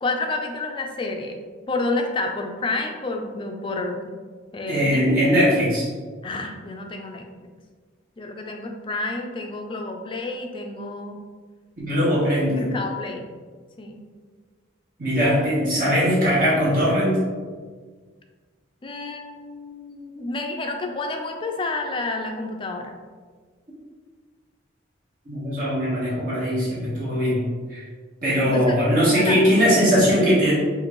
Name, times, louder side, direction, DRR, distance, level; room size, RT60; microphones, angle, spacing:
voice 1, 0.0-1.4 1.7-4.0 4.5-5.1 6.2-7.3 8.2-11.2 12.4-13.3 13.8-14.0 18.8-22.9 28.4-28.8 29.0-29.3, left 3 dB, 25° left, 3 dB, 0.4 m, -29 dB
voice 2, 4.7-5.9 11.8-12.8 15.0-17.2 25.3-27.4 27.7-27.8 28.2-30.5, equal, 45° right, -8 dB, 1.1 m, -20 dB
5.1 x 2.6 x 3.0 m, 1.5 s
head